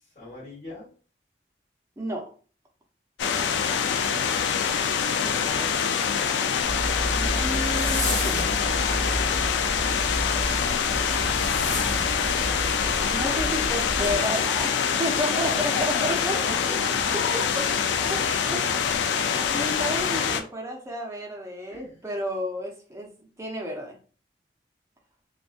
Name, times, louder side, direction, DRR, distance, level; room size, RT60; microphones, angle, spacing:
voice 1, 0.1-0.9 5.2-5.9 15.3-17.1 21.7-22.1, left 3 dB, 40° left, -8 dB, 1.2 m, -38 dB
voice 2, 2.0-2.3 7.1-8.6 13.1-16.4 17.1-17.7 18.1-18.7 19.5-24.0, equal, 15° right, 1 dB, 0.5 m, -32 dB
sound 1, 3.2-20.4, left 7 dB, 85° left, 0.3 m, -25 dB
Zipper (clothing), 6.6-14.1, equal, 20° left, 0.9 m, -31 dB
2.5 x 2.2 x 2.4 m, 0.40 s
head